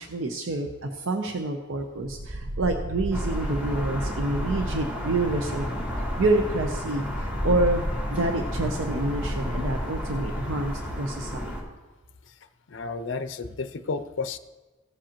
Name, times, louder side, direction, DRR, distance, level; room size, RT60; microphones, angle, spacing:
voice 1, 0.0-5.7 6.2-7.8 8.1-11.5, right 2 dB, 75° right, 4 dB, 0.7 m, -28 dB
sound 1, 2.0-8.0, right 1 dB, 30° right, 0.5 m, -36 dB
sound 2, 3.1-11.6, equal, 10° right, 1.9 m, -31 dB
voice 2, 12.7-14.4, left 4 dB, 65° left, 11 dB, 0.5 m, -32 dB
15.0 x 7.5 x 3.0 m, 1.2 s
head